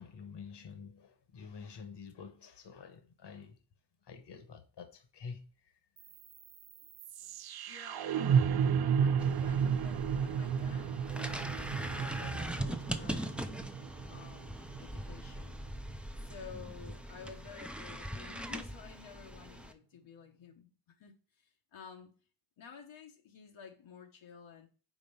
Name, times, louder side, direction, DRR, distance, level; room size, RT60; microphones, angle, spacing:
voice 1, 0.0-3.6 4.0-5.7 8.9-9.5, left 5 dB, 60° left, 1.2 m, -49 dB
sound 1, 6.0-16.0, right 7 dB, 55° right, 0.5 m, -33 dB
voice 2, 7.7-8.4 8.8-13.4 14.0-15.6 16.2-20.7 21.0-22.1 22.6-24.7, left 6 dB, 80° left, 1.1 m, -52 dB
sound 2, 9.2-19.7, right 1 dB, 5° right, 0.4 m, -41 dB
5.2 x 4.1 x 5.4 m
wide cardioid pair, 130°, 46 cm